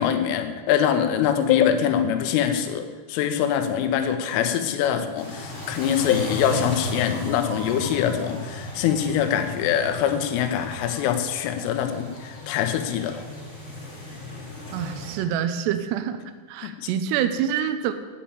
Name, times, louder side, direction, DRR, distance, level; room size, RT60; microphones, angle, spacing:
voice 1, 0.0-13.2 16.6-16.9, left 9 dB, 90° left, 7 dB, 3.4 m, -24 dB
sound 1, 5.1-15.1, left 2 dB, 20° left, 2.3 m, -35 dB
voice 2, 14.7-16.2 16.5-17.9, right 9 dB, 80° right, 9 dB, 2.5 m, -26 dB
8.6 x 8.4 x 8.6 m, 1.3 s
omnidirectional pair, 5.6 m